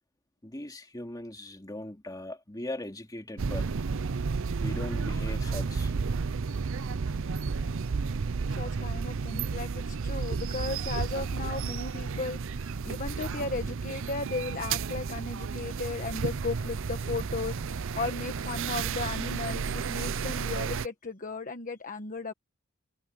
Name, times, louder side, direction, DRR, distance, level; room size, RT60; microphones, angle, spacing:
voice 1, 0.4-3.7 4.6-5.9 7.3-7.4, left 1 dB, 20° left, 2.6 m, -39 dB
sound 1, 3.4-20.9, right 5 dB, 65° right, 0.6 m, -32 dB
voice 2, 8.5-22.3, left 3 dB, 40° left, 1.2 m, -36 dB
head